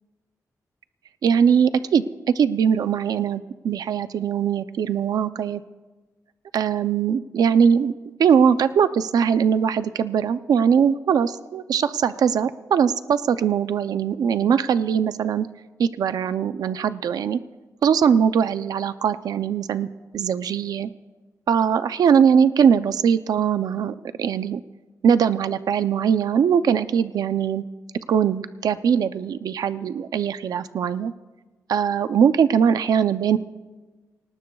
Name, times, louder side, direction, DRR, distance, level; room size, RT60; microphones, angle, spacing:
voice 1, 1.2-5.6 6.5-7.9 8.2-15.5 15.8-17.4 17.8-19.9 20.1-20.9 21.5-24.6 25.0-27.6 28.1-31.1 31.7-33.4, right 7 dB, 90° right, 12 dB, 0.5 m, -21 dB
25.0 x 19.0 x 2.3 m, 1.3 s
wide cardioid pair, 100°, 6 cm